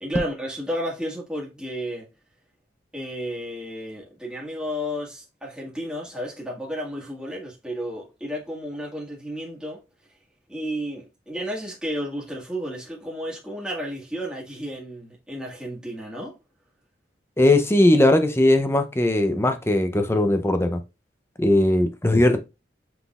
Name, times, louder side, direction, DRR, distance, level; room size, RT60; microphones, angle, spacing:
voice 1, 0.0-2.1 2.9-9.8 10.5-16.3, equal, 5° right, 1.7 m, -32 dB
voice 2, 17.4-20.8 21.4-22.4, left 1 dB, 15° left, 0.6 m, -19 dB
5.9 x 3.7 x 2.4 m
head